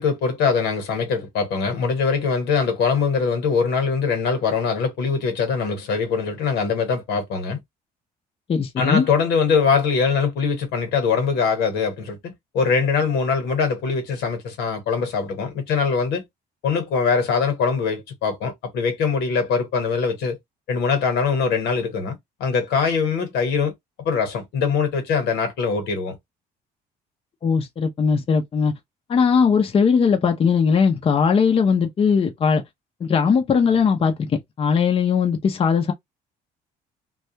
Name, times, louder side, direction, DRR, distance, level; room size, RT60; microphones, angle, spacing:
voice 1, 0.0-7.6 8.8-16.2 16.6-20.4 20.7-23.7 24.0-26.2, left 5 dB, 80° left, 1.1 m, -22 dB
voice 2, 8.5-9.1 27.4-28.7 29.1-32.6 33.0-34.1 34.6-35.9, left 6 dB, 35° left, 0.6 m, -19 dB
2.3 x 2.2 x 2.8 m
cardioid pair, 110°, 17 cm